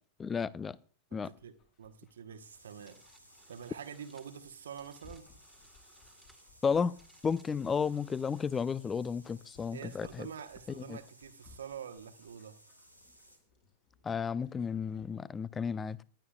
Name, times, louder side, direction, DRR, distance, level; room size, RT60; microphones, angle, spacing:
voice 1, 0.2-0.8 1.1-1.3 6.6-6.9 7.2-10.3 10.8-11.0 14.0-16.0, left 6 dB, 20° left, 0.5 m, -33 dB
voice 2, 1.1-3.0 3.5-5.3 9.7-12.6, right 8 dB, 65° right, 1.1 m, -46 dB
Dog, 1.2-15.0, left 4 dB, 45° left, 5.9 m, -64 dB
sound 1, 2.4-13.4, equal, 90° left, 2.5 m, -60 dB
sound 2, 2.7-8.5, right 1 dB, ahead, 2.2 m, -66 dB
20.5 x 11.0 x 2.3 m
figure-of-eight pair, 90°, 0 cm